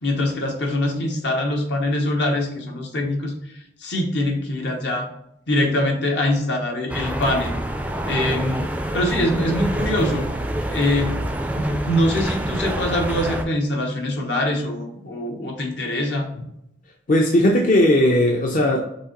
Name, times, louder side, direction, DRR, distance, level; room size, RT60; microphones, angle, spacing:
voice 1, 0.0-3.3 3.8-5.1 5.5-7.5 8.0-10.3 10.6-11.2 11.5-16.5, left 1 dB, 75° left, 1 dB, 1.1 m, -23 dB
sound 1, 6.9-13.4, right 1 dB, 10° right, 0.4 m, -26 dB
voice 2, 17.1-18.8, left 1 dB, 50° left, 0 dB, 0.6 m, -17 dB
6.1 x 2.8 x 3.0 m, 0.77 s
head